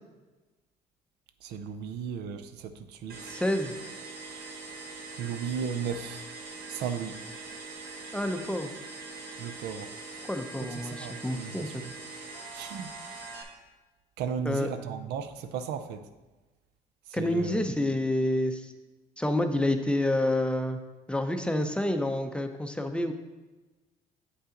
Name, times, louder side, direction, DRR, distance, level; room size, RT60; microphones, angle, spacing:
voice 1, 1.4-2.7 3.0-3.2 5.2-6.2 6.7-7.2 9.4-9.9 10.9-11.9 12.5-12.9 14.2-16.0 17.1-17.6, right 7 dB, 80° right, 10 dB, 0.6 m, -35 dB
sound 1, 3.1-13.4, right 3 dB, 60° right, 1.4 m, -42 dB
voice 2, 3.3-3.8 8.1-8.7 10.3-11.8 14.4-14.7 17.1-18.7 19.2-20.8 21.1-23.1, left 1 dB, 5° left, 6 dB, 0.5 m, -28 dB
8.0 x 5.5 x 3.8 m, 1.2 s
cardioid pair, 110°, 17 cm